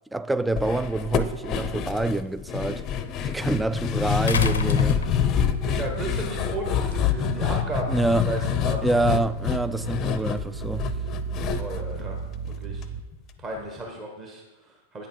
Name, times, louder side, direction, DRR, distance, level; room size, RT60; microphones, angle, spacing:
voice 1, 0.1-2.8 3.2-5.2 7.9-8.3 8.8-10.9, right 2 dB, 5° right, 0.3 m, -26 dB
sound 1, 0.6-12.8 13.1-13.2 13.6-13.7, left 8 dB, 35° left, 0.6 m, -27 dB
sound 2, 1.0-1.1 4.3-5.6 6.9-7.0, left 8 dB, 75° left, 0.6 m, -27 dB
sound 3, 4.4-13.0, right 6 dB, 45° right, 0.7 m, -34 dB
voice 2, 5.6-8.9 11.6-12.2 12.6-12.9 13.4-15.1, right 1 dB, 30° right, 1.5 m, -34 dB
9.0 x 7.4 x 4.4 m
figure-of-eight pair, 100°, 0 cm